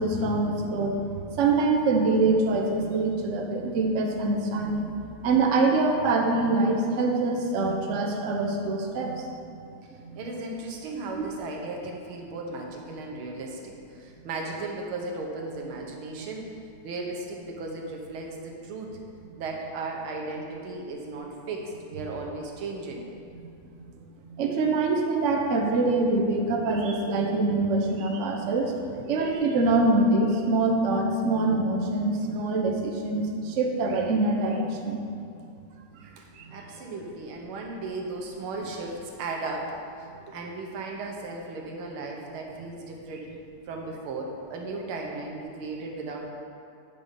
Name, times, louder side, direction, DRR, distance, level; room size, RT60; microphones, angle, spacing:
voice 1, 0.0-4.9 5.2-9.1 10.0-10.1 16.2-16.3 23.7-23.8 24.4-28.7 29.1-35.0 36.4-36.5, right 3 dB, 50° right, 1 dB, 0.9 m, -24 dB
voice 2, 9.8-16.5 16.8-19.0 19.4-23.1 29.0-29.3 36.2-43.3 43.7-46.3, right 3 dB, 90° right, 1 dB, 1.9 m, -36 dB
8.7 x 5.6 x 5.3 m, 2.4 s
omnidirectional pair, 2.3 m